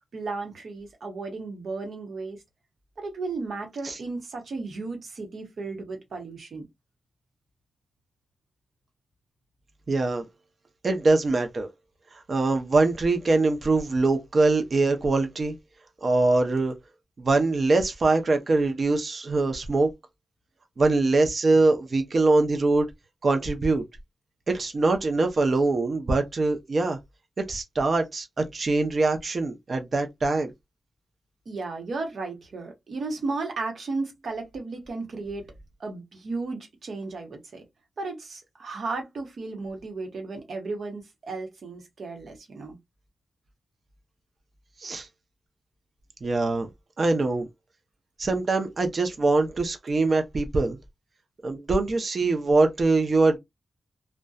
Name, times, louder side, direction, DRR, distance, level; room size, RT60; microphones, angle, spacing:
voice 1, 0.1-2.4 3.0-6.6 31.5-35.4 35.8-37.6 38.0-42.8, right 3 dB, 75° right, 1.0 m, -34 dB
voice 2, 9.9-10.2 10.8-11.7 12.3-15.5 16.0-16.7 17.2-19.9 20.8-22.9 23.2-23.8 24.5-27.0 27.4-30.5 44.8-45.1 46.2-46.7 47.0-47.5 48.2-50.8 51.4-53.4, right 3 dB, 55° right, 0.6 m, -23 dB
2.6 x 2.2 x 2.3 m
cardioid pair, 75°, 0 cm